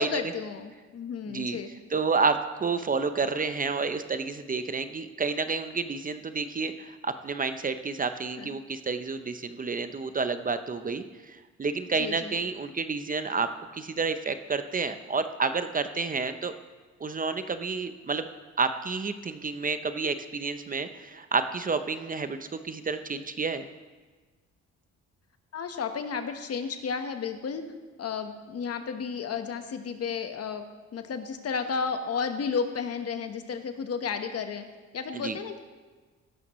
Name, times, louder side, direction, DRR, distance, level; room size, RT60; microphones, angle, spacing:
voice 1, 0.0-1.7 8.4-8.6 11.9-12.3 25.5-27.6 28.0-30.6 30.9-34.6 34.9-35.6, left 6 dB, 55° left, 7 dB, 1.2 m, -32 dB
voice 2, 1.3-1.6 1.9-13.5 13.7-16.5 17.0-18.3 18.6-23.7 35.1-35.3, right 4 dB, 30° right, 10 dB, 0.6 m, -30 dB
15.5 x 12.0 x 3.1 m, 1.3 s
cardioid pair, 90°, 30 cm